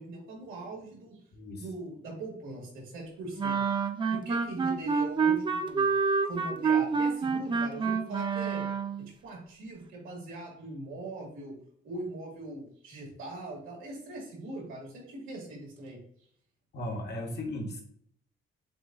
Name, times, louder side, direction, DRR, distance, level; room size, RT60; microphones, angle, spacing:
voice 1, 0.0-1.2 1.6-3.6 4.1-5.9 6.3-8.7 9.0-11.6 11.8-16.0, right 2 dB, 90° right, -2 dB, 1.8 m, -41 dB
voice 2, 1.3-1.6 16.7-17.8, left 1 dB, 55° left, 0 dB, 1.1 m, -36 dB
sound 1, 3.4-9.1, right 5 dB, 25° right, 0.4 m, -28 dB
7.5 x 2.5 x 2.3 m, 0.63 s
cardioid pair, 90°, 20 cm